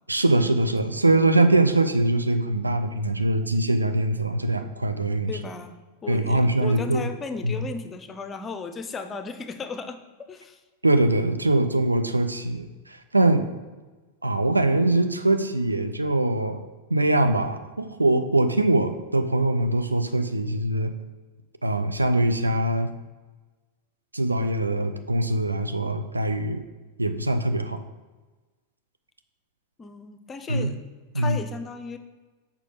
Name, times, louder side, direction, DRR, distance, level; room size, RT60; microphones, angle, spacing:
voice 1, 0.1-5.3 6.1-7.1 7.4-7.7 10.8-13.5 14.2-16.6 16.9-20.9 21.6-22.9 24.1-26.6 27.0-27.8 30.5-30.7 31.1-31.4, right 2 dB, 80° right, 8 dB, 0.5 m, -22 dB
voice 2, 5.3-5.8 6.0-10.6 29.8-30.8 31.1-32.0, left 4 dB, 20° left, 9 dB, 0.6 m, -35 dB
6.7 x 5.0 x 5.0 m, 1.3 s
figure-of-eight pair, 90°, 0 cm